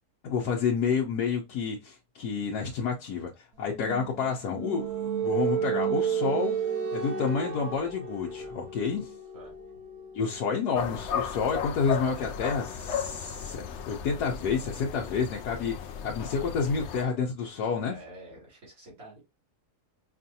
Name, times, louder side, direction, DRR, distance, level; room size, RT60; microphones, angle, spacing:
voice 1, 0.2-6.5 6.9-9.1 10.1-18.0, left 5 dB, 90° left, 1.4 m, -29 dB
sound 1, 3.7-15.2, right 7 dB, 80° right, 1.7 m, -34 dB
sound 2, 10.7-17.0, left 7 dB, 70° left, 0.7 m, -35 dB
voice 2, 17.8-19.2, right 1 dB, 65° right, 3.3 m, -48 dB
5.3 x 2.5 x 2.7 m
omnidirectional pair, 1.6 m